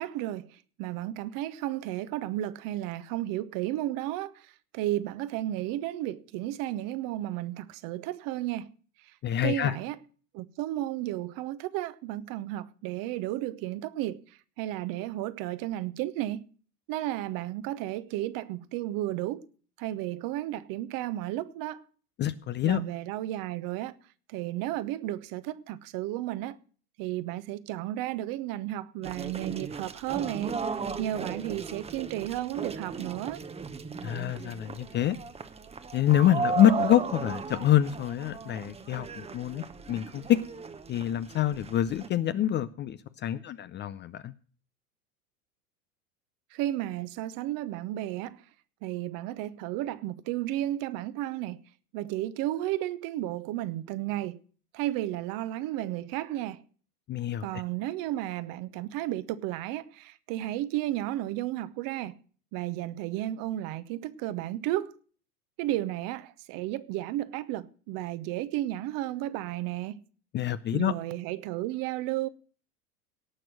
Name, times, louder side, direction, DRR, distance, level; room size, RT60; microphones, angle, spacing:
voice 1, 0.0-8.7 9.0-9.2 9.4-10.0 10.3-16.5 16.9-19.4 19.8-21.8 22.6-23.9 24.3-26.6 27.0-33.4 46.5-48.4 48.8-51.6 51.9-54.4 54.7-56.6 57.4-62.1 62.5-64.9 65.6-70.0 70.7-72.3, right 14 dB, 45° right, 1.0 m, -33 dB
voice 2, 9.2-9.8 22.2-22.8 34.0-35.2 35.9-40.4 40.9-44.3 57.1-57.5 70.3-70.9, left 11 dB, 25° left, 0.5 m, -26 dB
sound 1, 29.0-42.1, right 5 dB, 15° right, 0.9 m, -37 dB
17.5 x 6.1 x 6.1 m
hypercardioid pair, 85°, 47 cm